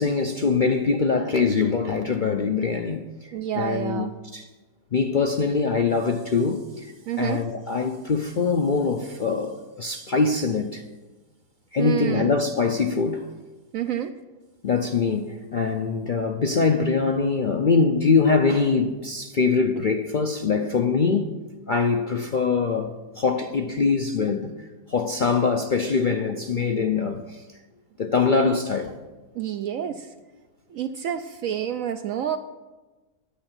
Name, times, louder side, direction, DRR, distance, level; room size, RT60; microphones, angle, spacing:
voice 1, 0.0-4.1 4.3-4.5 4.9-6.9 7.2-10.8 11.7-13.2 14.6-21.3 21.7-24.5 24.9-27.4 28.0-29.0, left 4 dB, 60° left, 0.5 m, -23 dB
voice 2, 3.3-4.1 7.1-7.4 11.8-12.3 13.7-14.1 29.3-30.1 30.7-32.4, right 10 dB, 70° right, 0.8 m, -28 dB
10.5 x 8.9 x 7.3 m
omnidirectional pair, 1.7 m